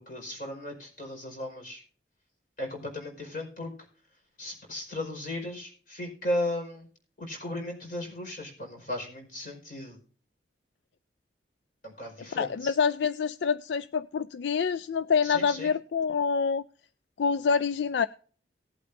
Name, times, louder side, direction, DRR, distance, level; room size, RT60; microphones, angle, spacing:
voice 1, 0.0-1.8 2.6-3.7 4.4-6.9 7.2-10.0 11.8-12.8 15.2-15.7, left 1 dB, 50° left, 1 dB, 5.1 m, -36 dB
voice 2, 12.3-16.6 17.2-18.1, left 6 dB, 80° left, 14 dB, 0.4 m, -26 dB
18.5 x 8.4 x 2.7 m, 0.43 s
head